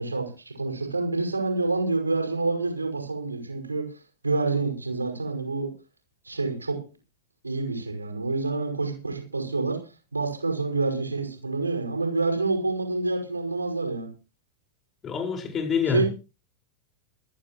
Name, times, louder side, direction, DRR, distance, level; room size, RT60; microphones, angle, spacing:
voice 1, 0.0-3.9 4.2-5.7 6.2-6.8 7.4-9.8 10.1-14.1 15.9-16.1, right 3 dB, 80° right, 5.4 m, -27 dB
voice 2, 15.0-16.1, left 7 dB, 25° left, 5.0 m, -26 dB
20.5 x 13.5 x 3.1 m
figure-of-eight pair, 90°, 0 cm